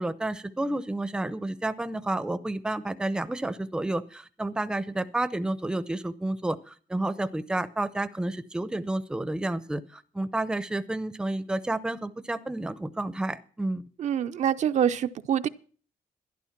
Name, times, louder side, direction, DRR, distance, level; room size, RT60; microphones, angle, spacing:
voice 1, 0.0-13.8, right 2 dB, 5° right, 0.6 m, -30 dB
voice 2, 14.0-15.5, right 9 dB, 55° right, 0.5 m, -25 dB
12.0 x 11.0 x 5.8 m
cardioid pair, 150°, 14 cm